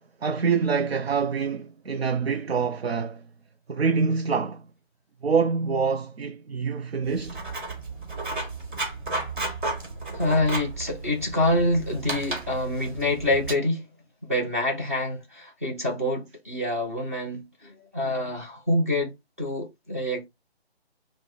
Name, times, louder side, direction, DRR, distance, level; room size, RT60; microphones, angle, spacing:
voice 1, 0.2-3.2 3.7-4.6 5.2-7.4, right 5 dB, 70° right, 0.6 m, -25 dB
Writing, 7.0-13.5, right 2 dB, 50° right, 1.7 m, -33 dB
voice 2, 10.1-13.9 14.2-20.2, left 1 dB, 15° right, 0.5 m, -26 dB
4.8 x 2.0 x 4.0 m
figure-of-eight pair, 150°, 32 cm